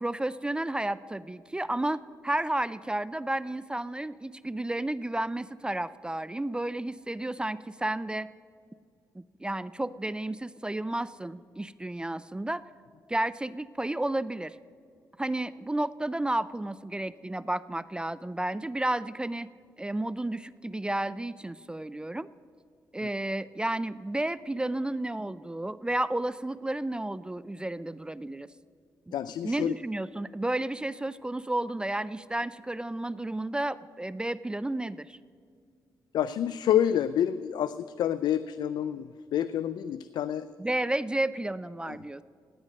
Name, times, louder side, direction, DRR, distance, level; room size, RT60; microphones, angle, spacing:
voice 1, 0.0-8.3 9.2-12.6 13.1-14.6 15.2-19.5 19.8-22.3 22.9-28.5 29.1-29.2 29.4-35.2 40.6-42.2, right 1 dB, 10° right, 17 dB, 0.4 m, -32 dB
voice 2, 29.1-29.7 36.1-40.5 41.9-42.0, left 10 dB, 80° left, 14 dB, 0.4 m, -28 dB
17.0 x 9.5 x 6.4 m, 2.2 s
cardioid pair, 80°, 7 cm